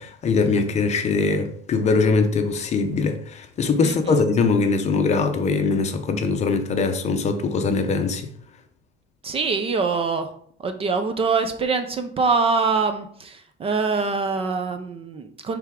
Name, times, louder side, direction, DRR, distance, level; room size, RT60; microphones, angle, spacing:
voice 1, 0.0-8.3, left 4 dB, 35° left, 0.7 m, -22 dB
voice 2, 3.8-4.2 9.2-10.3 10.6-15.6, right 4 dB, 30° right, 0.5 m, -24 dB
7.8 x 3.4 x 3.6 m
cardioid pair, 150°, 21 cm